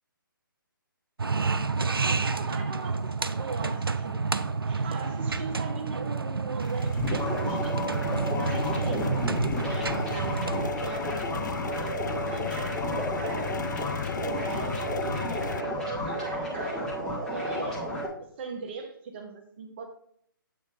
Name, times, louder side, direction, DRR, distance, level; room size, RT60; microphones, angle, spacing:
sound 1, 1.2-10.7, right 4 dB, 80° right, 0.5 m, -29 dB
voice 1, 1.9-7.8 8.4-9.1 9.6-10.5 10.8-13.5 14.2-16.9 17.3-17.9 18.2-19.8, right 4 dB, 30° right, 4 dB, 0.6 m, -40 dB
sound 2, 6.6-15.6, left 7 dB, 55° left, 0.4 m, -37 dB
sound 3, 7.0-18.1, equal, 5° left, 1.5 m, -32 dB
7.7 x 3.1 x 5.0 m, 0.66 s
figure-of-eight pair, 140°, 12 cm